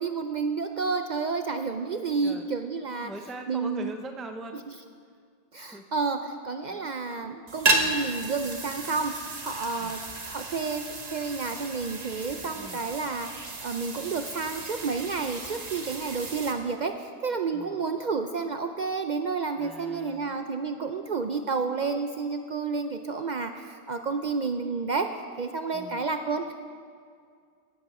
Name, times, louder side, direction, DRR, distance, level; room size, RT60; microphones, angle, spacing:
voice 1, 0.0-3.1 3.5-3.9 5.5-9.1 9.4-10.0 10.3-10.8 11.1-25.1 25.4-26.5, right 4 dB, 55° right, 7 dB, 0.5 m, -30 dB
voice 2, 1.9-2.5 3.0-4.6 5.6-5.8 6.7-6.9 7.8-8.1 9.8-10.1 12.5-12.9 17.5-17.8 19.6-20.4 25.7-26.1, right 1 dB, ahead, 6 dB, 0.3 m, -42 dB
sound 1, 7.5-16.5, right 2 dB, 40° right, 1.1 m, -33 dB
15.5 x 11.0 x 4.2 m, 2.2 s
omnidirectional pair, 1.2 m